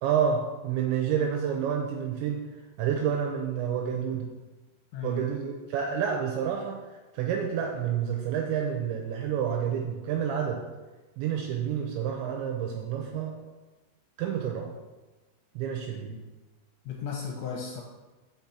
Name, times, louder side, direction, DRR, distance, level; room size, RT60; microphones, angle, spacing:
voice 1, 0.0-2.4 2.8-4.3 5.0-6.8 7.1-10.6 11.2-13.4 14.2-14.7 15.6-16.2, right 8 dB, 80° right, 1 dB, 2.7 m, -29 dB
voice 2, 4.9-5.3 16.1-16.2 16.9-17.8, left 6 dB, 75° left, -1 dB, 3.0 m, -35 dB
6.0 x 6.0 x 7.0 m, 1.2 s
omnidirectional pair, 5.8 m